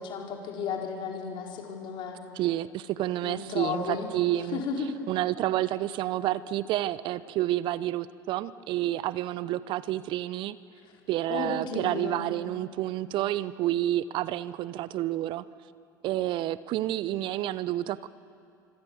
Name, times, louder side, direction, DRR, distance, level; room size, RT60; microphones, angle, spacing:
voice 1, 0.0-2.2 3.2-4.1 4.5-4.9 11.3-12.3, left 6 dB, 45° left, 1 dB, 4.7 m, -33 dB
voice 2, 2.3-4.6 5.1-10.6 11.1-15.4 16.0-18.1, right 14 dB, 45° right, 17 dB, 0.7 m, -29 dB
25.5 x 25.0 x 7.3 m, 2.4 s
figure-of-eight pair, 75°, 11 cm